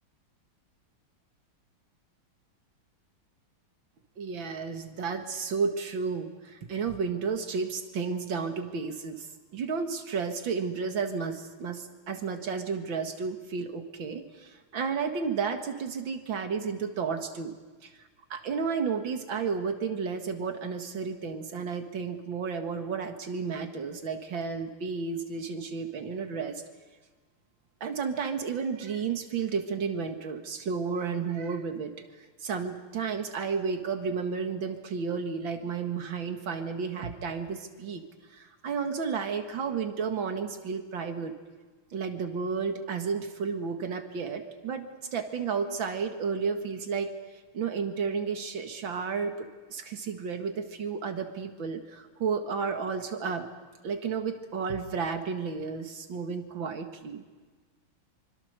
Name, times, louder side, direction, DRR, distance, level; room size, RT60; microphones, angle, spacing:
voice 1, 4.2-9.3 9.5-17.6 17.8-17.9 18.3-26.6 27.8-31.9 32.4-38.0 38.3-41.3 41.9-47.1 47.5-53.5 53.8-57.2, right 5 dB, 65° right, 5 dB, 2.6 m, -32 dB
26.0 x 25.0 x 6.7 m, 1.3 s
omnidirectional pair, 2.3 m